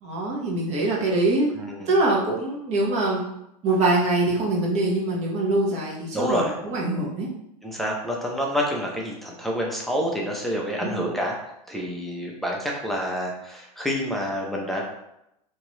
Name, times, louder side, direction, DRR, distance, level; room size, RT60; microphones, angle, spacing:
voice 1, 0.0-1.5 1.9-3.2 3.6-7.3 10.8-11.0, right 2 dB, 35° right, -4 dB, 1.2 m, -23 dB
voice 2, 1.5-1.9 6.1-6.5 7.6-11.3 11.7-14.8, equal, ahead, -2 dB, 0.6 m, -28 dB
2.9 x 2.5 x 3.1 m, 0.82 s
hypercardioid pair, 105°, 20 cm